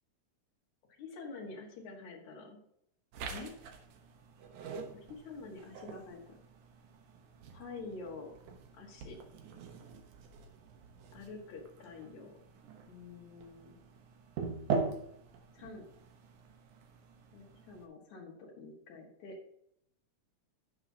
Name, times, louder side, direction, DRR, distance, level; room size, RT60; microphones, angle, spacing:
voice 1, 1.0-2.6 3.3-3.5 4.9-6.3 7.5-8.3 8.7-9.2 11.1-12.4 12.9-13.8 15.5-15.9 17.3-19.4, left 3 dB, 75° left, -1 dB, 3.2 m, -47 dB
sound 1, 3.1-17.9, right 4 dB, 90° right, 2.6 m, -43 dB
16.5 x 6.2 x 2.8 m, 0.73 s
omnidirectional pair, 3.4 m